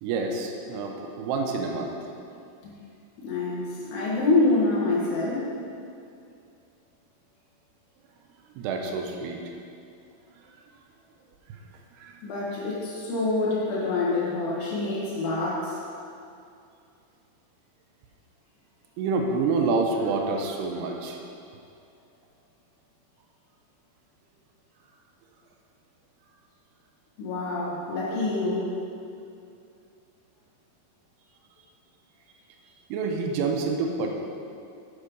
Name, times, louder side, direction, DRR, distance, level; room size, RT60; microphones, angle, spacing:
voice 1, 0.0-2.0 8.6-9.4 11.5-11.6 12.0-12.2 14.6-14.7 19.0-21.2 32.9-34.1, right 4 dB, 90° right, 2 dB, 2.9 m, -28 dB
voice 2, 3.2-5.5 12.2-15.7 27.2-28.7, left 2 dB, 90° left, -6 dB, 3.7 m, -26 dB
8.2 x 7.6 x 5.4 m, 2.5 s
omnidirectional pair, 4.6 m